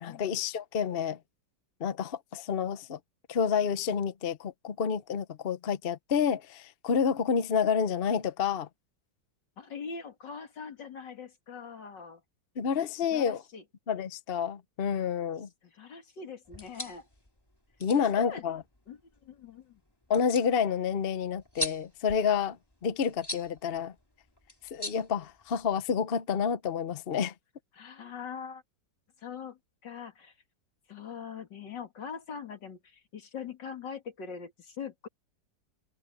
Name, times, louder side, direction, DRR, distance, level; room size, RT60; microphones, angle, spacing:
voice 1, 0.0-1.2 1.8-3.0 3.3-8.7 12.6-13.4 13.9-15.5 17.8-18.6 20.1-22.6 22.8-23.9 24.7-27.3, left 7 dB, 45° left, 0.8 m, -29 dB
voice 2, 9.6-12.2 13.1-13.6 15.6-17.1 18.0-18.4 18.9-19.8 27.7-28.6 29.2-30.3 30.9-35.1, left 6 dB, 80° left, 2.8 m, -42 dB
sound 1, 16.4-25.9, left 1 dB, 15° left, 2.7 m, -43 dB
omnidirectional pair, 1.9 m